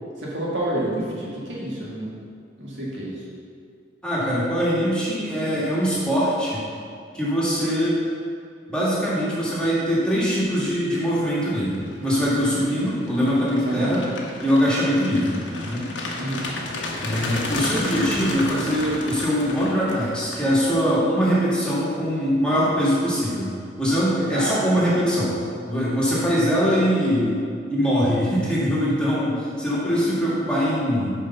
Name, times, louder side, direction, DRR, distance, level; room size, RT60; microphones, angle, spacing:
voice 1, 0.2-2.1 2.6-3.2 12.6-12.7 13.7-14.0 16.2-16.6 24.3-24.6, right 1 dB, 70° right, -6 dB, 2.0 m, -29 dB
voice 2, 4.0-6.6 7.1-8.0 8.7-14.1 14.4-15.9 17.0-25.3 25.7-27.4 27.7-31.1, equal, 5° left, -8 dB, 1.9 m, -22 dB
sound 1, 10.2-10.5 10.9-21.0, left 2 dB, 75° left, 1.2 m, -33 dB
6.6 x 5.2 x 5.5 m, 2.3 s
head